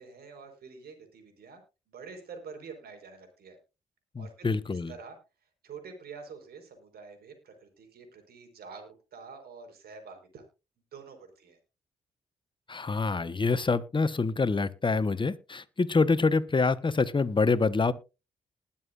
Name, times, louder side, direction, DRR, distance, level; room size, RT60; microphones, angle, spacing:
voice 1, 0.0-1.6 1.9-3.6 4.2-5.2 5.6-10.4 10.9-11.6, right 5 dB, 65° right, 5 dB, 4.6 m, -47 dB
voice 2, 4.1-4.9 12.7-17.9, left 4 dB, 30° left, 13 dB, 1.2 m, -26 dB
20.5 x 7.3 x 2.5 m, 0.29 s
hypercardioid pair, 45°, 17 cm